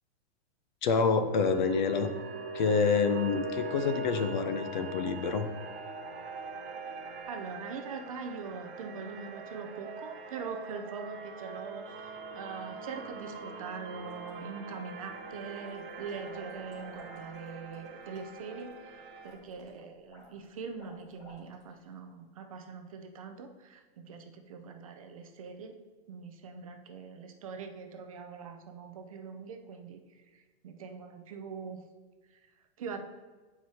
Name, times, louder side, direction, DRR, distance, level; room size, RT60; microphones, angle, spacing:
voice 1, 0.8-2.1 2.5-5.5, left 5 dB, 50° left, 9 dB, 0.5 m, -27 dB
sound 1, 1.3-19.4, right 3 dB, 55° right, 0.9 m, -42 dB
voice 2, 7.3-25.7 26.1-31.8 32.2-32.5 32.8-33.0, right 5 dB, 35° right, 5 dB, 0.4 m, -43 dB
sound 2, 13.9-14.7 15.1-21.8, equal, 25° left, 1.5 m, -55 dB
7.7 x 4.7 x 2.7 m, 1.3 s
supercardioid pair, 170°, 32 cm